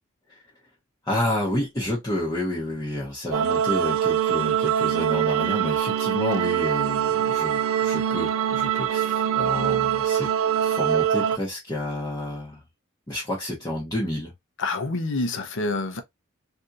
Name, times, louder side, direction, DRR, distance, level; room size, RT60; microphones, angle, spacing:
voice 1, 1.1-10.3 10.6-12.6 13.1-14.3, left 1 dB, 15° left, 0.9 m, -30 dB
sound 1, 3.3-11.4, right 9 dB, 75° right, 0.3 m, -23 dB
voice 2, 14.6-16.0, left 2 dB, 60° left, 0.8 m, -27 dB
3.4 x 2.7 x 2.5 m
head